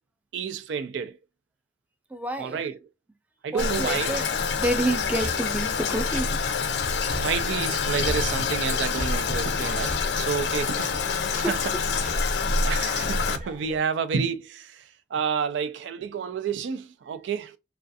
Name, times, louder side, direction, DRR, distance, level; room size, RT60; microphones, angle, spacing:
voice 1, 0.3-1.2 2.4-2.8 3.4-4.2 7.1-11.6 12.3-17.6, right 6 dB, 90° right, 0.3 m, -30 dB
voice 2, 2.1-2.6 3.5-4.3 4.6-6.3 6.6-6.8 11.3-11.5, right 1 dB, 10° right, 0.4 m, -29 dB
Toilet flush, 3.6-13.4, left 5 dB, 70° left, 0.4 m, -27 dB
sound 1, 5.0-13.8, equal, 45° right, 0.6 m, -36 dB
2.4 x 2.3 x 2.6 m
head